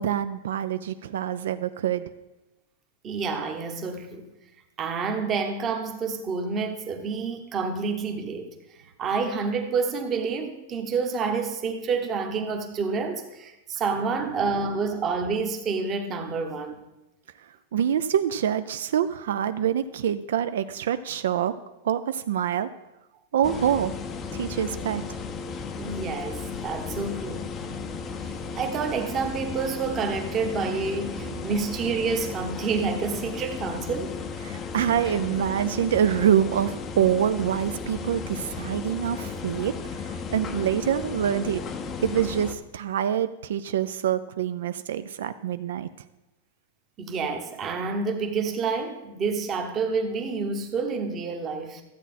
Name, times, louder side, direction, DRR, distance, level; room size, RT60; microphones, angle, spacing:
voice 1, 0.0-2.1 17.7-21.5 21.8-22.7 23.3-23.9 24.3-25.0 31.2-31.5 34.4-39.7 40.0-41.6 42.0-45.9, right 9 dB, 70° right, 0.4 m, -25 dB
voice 2, 3.0-4.3 4.8-8.5 9.0-16.8 25.8-27.5 28.2-34.2 47.0-51.8, right 4 dB, 20° right, 0.9 m, -28 dB
sound 1, 23.4-42.5, left 5 dB, 15° left, 0.5 m, -35 dB
13.5 x 8.2 x 4.2 m
supercardioid pair, 175°, 0 cm